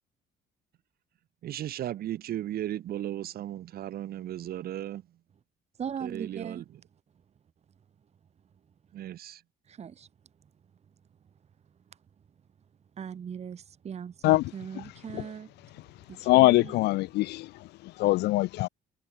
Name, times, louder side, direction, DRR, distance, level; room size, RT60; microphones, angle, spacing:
voice 1, 1.4-5.0 6.0-6.8 8.9-9.4, right 12 dB, 65° right, 5.5 m, -36 dB
voice 2, 5.8-6.6 9.7-10.1 13.0-15.5 16.1-16.8, right 7 dB, 40° right, 1.8 m, -39 dB
voice 3, 16.3-17.5 18.0-18.7, left 19 dB, 80° left, 0.8 m, -22 dB
cardioid pair, 110°, 17 cm